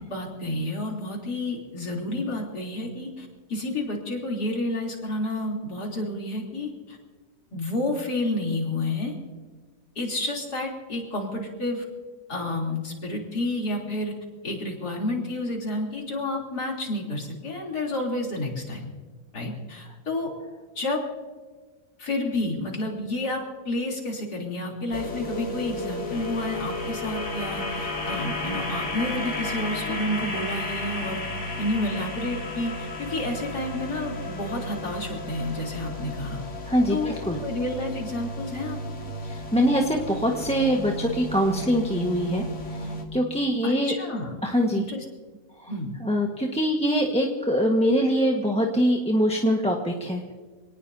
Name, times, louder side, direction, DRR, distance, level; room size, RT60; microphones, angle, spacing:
voice 1, 0.1-7.0 7.5-9.1 10.0-11.8 12.3-14.1 14.4-18.9 19.3-20.3 20.8-21.0 22.0-31.2 31.6-36.4 36.9-37.1 37.4-38.8 43.6-44.4 44.7-45.0 45.7-45.9, left 1 dB, 85° left, -1 dB, 4.0 m, -30 dB
sound 1, 24.9-43.0, left 1 dB, 50° left, 2.7 m, -33 dB
voice 2, 36.7-37.4 39.2-42.4 42.7-43.9 44.4-44.8 45.6-45.7 46.0-50.3, equal, 5° left, 0 dB, 1.3 m, -23 dB
27.0 x 19.0 x 2.8 m, 1.4 s
omnidirectional pair, 1.7 m